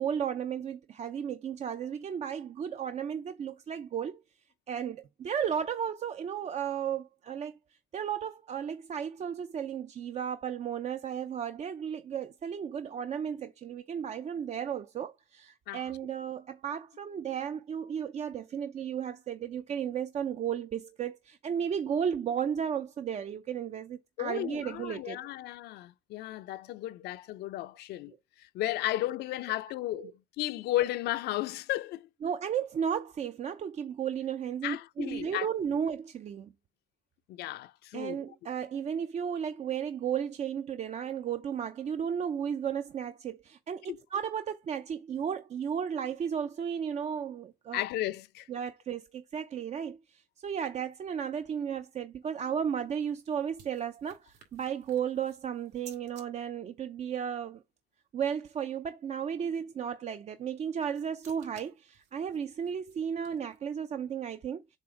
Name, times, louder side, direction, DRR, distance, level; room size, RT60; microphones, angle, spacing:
voice 1, 0.0-4.2 4.7-7.6 7.9-25.2 30.0-30.1 32.2-36.5 37.9-47.8 48.5-57.6 58.1-64.8, right 8 dB, 40° right, 0.5 m, -34 dB
voice 2, 24.2-28.1 28.4-32.1 34.6-35.5 37.3-38.2 43.9-44.0 47.7-48.5, left 15 dB, 75° left, 0.6 m, -34 dB
sound 1, 52.6-56.3 60.4-63.8, right 6 dB, 85° right, 2.3 m, -58 dB
7.3 x 2.5 x 5.0 m
cardioid pair, 110°, 17 cm